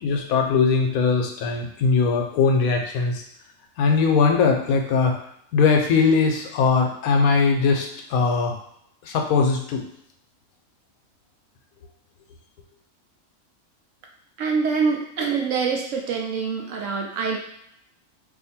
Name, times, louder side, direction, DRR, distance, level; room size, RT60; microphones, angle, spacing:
voice 1, 0.0-3.2 3.8-5.1 5.5-8.5 9.0-9.8, left 5 dB, 80° left, 2 dB, 1.1 m, -20 dB
voice 2, 14.4-17.4, right 5 dB, 70° right, 1 dB, 0.9 m, -25 dB
2.8 x 2.5 x 4.2 m, 0.74 s
omnidirectional pair, 1.5 m